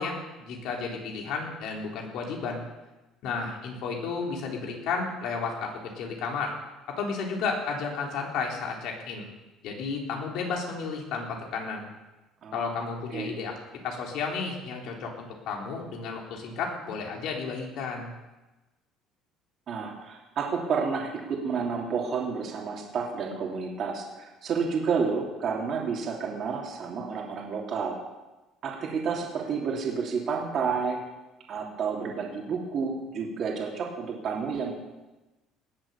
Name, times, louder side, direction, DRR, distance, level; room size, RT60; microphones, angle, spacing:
voice 1, 0.0-2.6 3.2-6.5 7.0-9.3 9.6-11.9 12.5-13.5 13.8-18.1, left 5 dB, 70° left, 0 dB, 3.6 m, -32 dB
voice 2, 19.7-27.9 28.6-31.0 31.5-34.7, right 5 dB, 50° right, -1 dB, 3.1 m, -30 dB
19.0 x 7.7 x 7.1 m, 1.1 s
cardioid pair, 125°, 0 cm